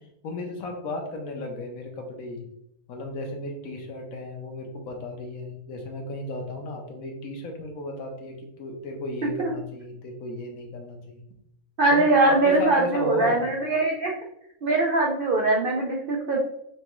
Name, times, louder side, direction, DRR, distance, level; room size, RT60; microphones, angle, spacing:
voice 1, 0.2-2.5 2.9-11.2 11.9-13.5, left 2 dB, 70° left, 2 dB, 1.2 m, -34 dB
voice 2, 11.8-14.1 14.6-16.4, right 2 dB, 70° right, -1 dB, 0.5 m, -22 dB
6.2 x 2.2 x 3.0 m, 0.78 s
omnidirectional pair, 1.6 m